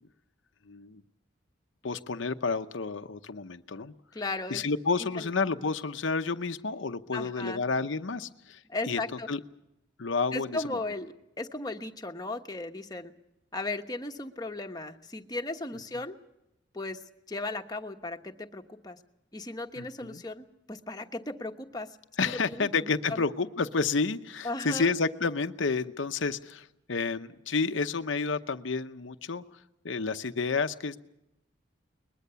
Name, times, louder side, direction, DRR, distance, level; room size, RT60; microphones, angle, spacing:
voice 1, 0.7-1.0 1.8-3.9 4.5-9.0 9.3-9.4 10.0-10.8 19.8-20.2 22.2-29.4 29.8-31.0, left 4 dB, 80° left, 9 dB, 0.8 m, -30 dB
voice 2, 4.1-4.6 5.0-5.3 7.1-7.6 8.7-9.3 10.3-13.1 13.5-16.2 16.7-17.0 17.3-19.0 19.3-22.0 22.2-23.2 24.4-24.9, left 2 dB, 20° left, 5 dB, 1.2 m, -36 dB
22.0 x 21.0 x 6.9 m, 0.86 s
head